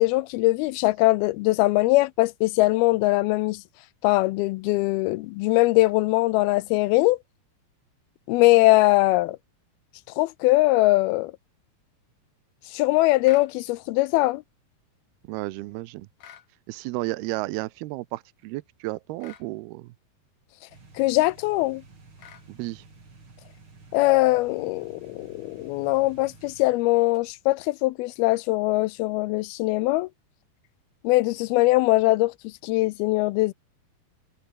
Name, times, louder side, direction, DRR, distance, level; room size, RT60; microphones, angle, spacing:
voice 1, 0.0-3.6 4.0-7.2 8.3-9.4 10.2-11.3 12.7-14.4 21.0-21.8 23.9-30.1 31.0-32.3 32.6-33.5, left 20 dB, 80° left, 2.3 m, -21 dB
sound 1, 13.2-13.5 16.2-16.5 19.2-19.5 22.2-22.5, left 9 dB, 55° left, 3.3 m, -47 dB
voice 2, 15.2-16.1 16.7-19.9 22.5-22.8, right 19 dB, 85° right, 2.6 m, -33 dB
sound 2, 20.7-27.2, right 3 dB, 30° right, 5.5 m, -51 dB
omnidirectional pair, 4.6 m